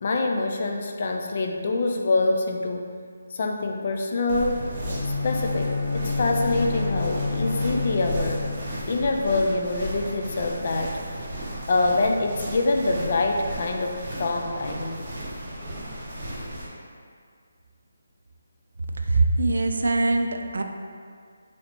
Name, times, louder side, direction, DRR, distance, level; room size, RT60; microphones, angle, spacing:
voice 1, 0.0-2.9 3.3-4.7 5.2-8.4 8.9-11.0 11.7-15.1, left 2 dB, 40° left, 3 dB, 0.3 m, -25 dB
sound 1, 4.3-16.7, right 1 dB, 40° right, 1.1 m, -35 dB
Bowed string instrument, 4.8-9.0, left 3 dB, ahead, 0.7 m, -29 dB
voice 2, 19.0-20.6, right 2 dB, 75° right, 4 dB, 0.4 m, -22 dB
4.1 x 3.1 x 2.8 m, 2.1 s
hypercardioid pair, 170°, 0 cm